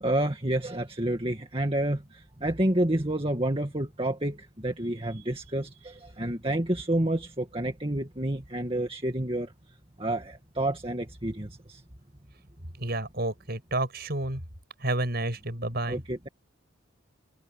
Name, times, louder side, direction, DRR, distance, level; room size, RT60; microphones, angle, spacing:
voice 1, 0.0-9.5 10.0-11.8 15.8-16.3, right 1 dB, 25° right, 2.1 m, -29 dB
voice 2, 12.8-14.4 14.8-16.0, right 1 dB, 50° right, 6.3 m, -30 dB
head